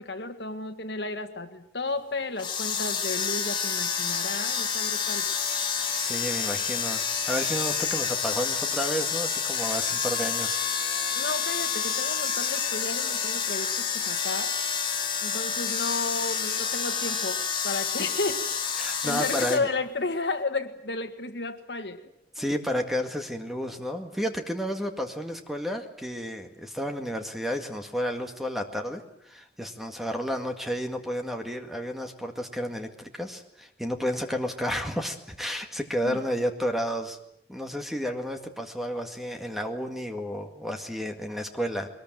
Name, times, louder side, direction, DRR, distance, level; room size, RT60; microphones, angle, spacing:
voice 1, 0.0-5.3 11.2-14.5 15.2-18.5 18.8-22.1 22.4-22.6 36.0-36.2, left 3 dB, 70° left, 8 dB, 1.8 m, -33 dB
sound 1, 2.4-19.6, left 6 dB, 25° left, 2.4 m, -29 dB
voice 2, 5.6-10.6 18.8-19.7 22.4-37.2 37.5-41.9, equal, ahead, 5 dB, 1.9 m, -31 dB
22.0 x 20.5 x 9.1 m, 0.77 s
head